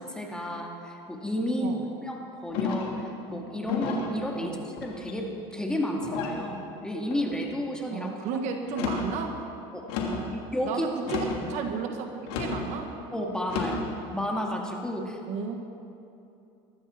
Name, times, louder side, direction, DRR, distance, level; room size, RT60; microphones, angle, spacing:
voice 1, 0.0-8.1 9.7-9.8 10.3-10.9 11.4-11.5 13.1-15.2, equal, 5° left, 0 dB, 2.2 m, -32 dB
voice 2, 1.6-1.9 4.4-4.6 7.9-9.4 10.1-12.9 15.3-15.6, right 5 dB, 60° right, 4 dB, 1.8 m, -34 dB
sound 1, 2.5-3.0 3.7-4.1 4.8-5.3 6.0-6.4 7.1-7.5 8.6-9.1 9.9-10.3 11.0-11.5 12.3-12.6 13.4-13.8, left 4 dB, 75° left, 3.0 m, -31 dB
21.0 x 14.5 x 4.4 m, 2.7 s
supercardioid pair, 110°, 14 cm